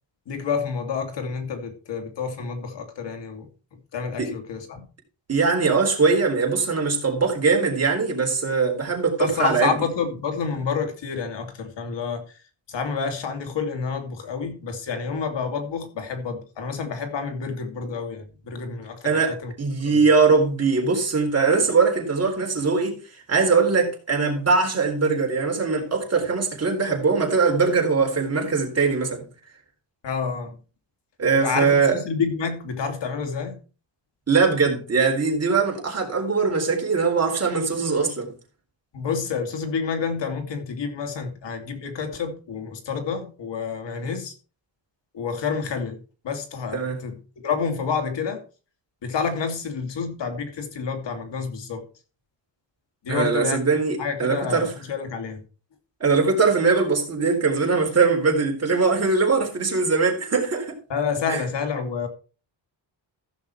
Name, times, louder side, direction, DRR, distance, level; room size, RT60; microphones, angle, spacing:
voice 1, 0.3-4.8 9.2-12.4 12.7-19.5 19.8-20.1 30.0-30.6 31.3-33.6 38.9-44.3 45.1-46.0 46.2-48.4 49.0-51.8 53.0-53.6 54.0-55.4 60.9-62.1, left 5 dB, 65° left, 2.7 m, -29 dB
voice 2, 5.3-9.7 19.0-23.0 23.3-29.3 31.2-32.0 34.3-38.3 46.7-47.0 53.1-54.7 56.0-60.8 61.3-61.4, right 4 dB, 30° right, 3.9 m, -21 dB
15.0 x 6.4 x 4.5 m
cardioid pair, 120°, 46 cm